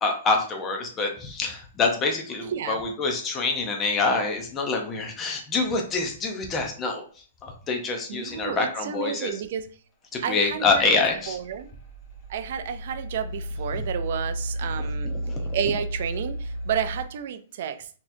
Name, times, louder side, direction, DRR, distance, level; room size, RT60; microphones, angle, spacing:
voice 1, 0.0-7.0 7.4-9.3 10.1-11.4 14.8-15.4, left 3 dB, 15° left, 0.5 m, -26 dB
voice 2, 8.1-9.7 10.2-10.8 11.3-11.7 12.3-15.1 15.5-17.8, right 8 dB, 50° right, 0.3 m, -31 dB
sound 1, 11.1-17.0, right 1 dB, 40° left, 1.2 m, -33 dB
4.0 x 2.8 x 2.6 m
hypercardioid pair, 170°, 0 cm